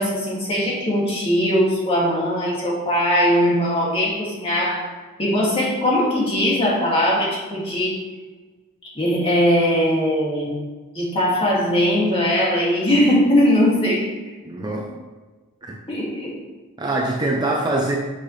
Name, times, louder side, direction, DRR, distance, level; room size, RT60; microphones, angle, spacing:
voice 1, 0.0-4.9 5.2-8.0 8.9-10.6 10.9-14.1 14.7-14.8 15.9-16.4, equal, 25° left, -5 dB, 2.3 m, -20 dB
voice 2, 14.4-14.9 15.6-15.8 16.8-18.0, right 2 dB, 20° right, -2 dB, 0.8 m, -23 dB
8.7 x 5.8 x 3.3 m, 1.3 s
head